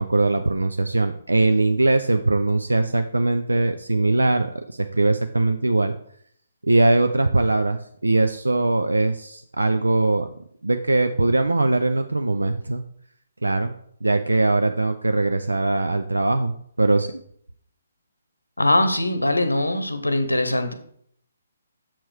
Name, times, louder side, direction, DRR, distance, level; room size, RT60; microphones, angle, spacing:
voice 1, 0.0-5.9 6.6-10.3 10.6-12.8 13.4-13.7 14.0-17.1, right 2 dB, 80° right, 8 dB, 0.4 m, -21 dB
voice 2, 18.6-20.7, left 1 dB, 90° left, 9 dB, 0.9 m, -21 dB
7.4 x 4.6 x 4.6 m, 0.64 s
figure-of-eight pair, 135°, 0 cm